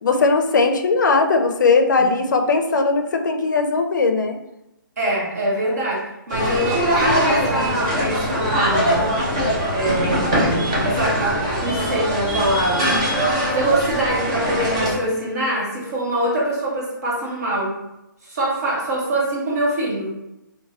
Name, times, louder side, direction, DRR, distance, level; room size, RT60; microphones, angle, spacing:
voice 1, 0.0-4.4, left 4 dB, 60° left, 6 dB, 0.4 m, -18 dB
voice 2, 5.0-9.1 9.7-13.0 13.5-17.7 18.2-20.1, right 1 dB, 45° right, -4 dB, 1.1 m, -24 dB
sound 1, 6.3-15.0, equal, 15° right, 0.4 m, -22 dB
2.9 x 2.2 x 2.8 m, 0.91 s
hypercardioid pair, 175°, 11 cm